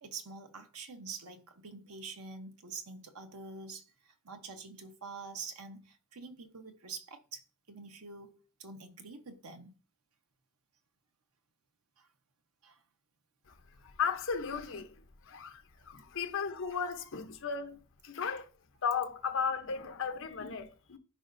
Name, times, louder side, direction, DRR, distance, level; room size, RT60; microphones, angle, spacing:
voice 1, 0.0-7.4 7.7-9.8 12.0-12.1 12.6-12.8, right 4 dB, 75° right, 1.1 m, -46 dB
voice 2, 14.0-14.9 15.3-18.5 18.8-21.0, left 6 dB, 60° left, 0.9 m, -35 dB
11.0 x 5.0 x 2.6 m
head